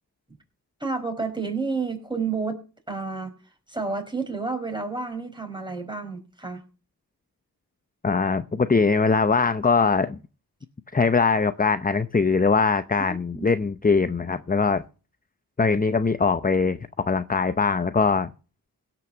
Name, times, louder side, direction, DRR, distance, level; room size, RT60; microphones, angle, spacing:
voice 1, 0.8-3.3 3.7-6.6 13.0-13.5, right 4 dB, 10° right, 4 dB, 5.3 m, -30 dB
voice 2, 8.0-10.2 10.9-14.8 15.6-18.3, left 4 dB, 20° left, 12 dB, 0.7 m, -22 dB
17.0 x 6.1 x 7.3 m, 0.35 s
cardioid pair, 55°, 39 cm